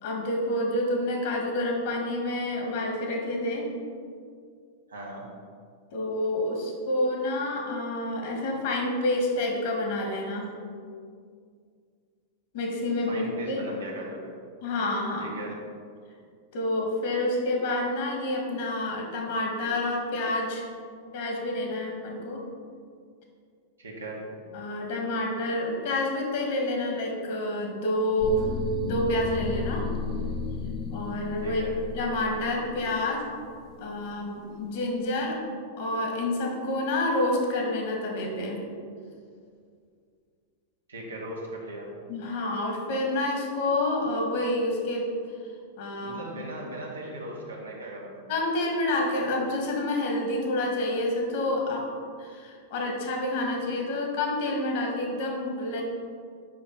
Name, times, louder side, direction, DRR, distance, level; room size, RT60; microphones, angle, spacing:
voice 1, 0.0-3.7 5.9-10.5 12.5-13.6 14.6-15.3 16.5-20.7 21.1-22.4 24.5-28.5 28.8-29.9 30.9-31.6 31.9-33.2 33.8-35.4 35.8-38.6 42.1-45.1 45.8-46.4 48.3-51.8 52.2-55.8, left 1 dB, 60° left, 0 dB, 1.8 m, -28 dB
voice 2, 4.9-5.2 13.1-14.3 15.2-15.6 23.8-24.5 31.4-31.8 40.9-41.9 46.0-48.2, right 1 dB, 85° right, -3 dB, 1.6 m, -38 dB
sound 1, 28.2-34.2, left 4 dB, 40° left, 0.5 m, -34 dB
5.8 x 5.4 x 5.4 m, 2.2 s
hypercardioid pair, 95°, 0 cm